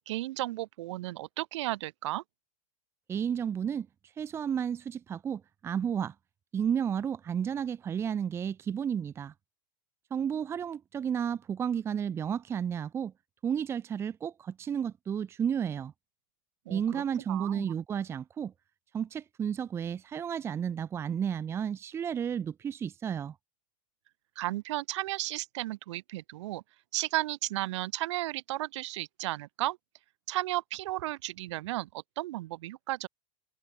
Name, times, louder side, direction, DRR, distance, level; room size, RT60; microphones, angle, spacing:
voice 1, 0.0-2.2 16.7-17.0 17.3-17.7 24.4-26.6 26.9-29.8 30.3-33.1, right 17 dB, 55° right, 5.7 m, -34 dB
voice 2, 3.1-3.9 4.2-6.1 6.5-9.3 10.1-13.1 13.4-15.9 16.7-18.5 18.9-23.3, right 8 dB, 15° right, 1.4 m, -32 dB
supercardioid pair, 175°, 18 cm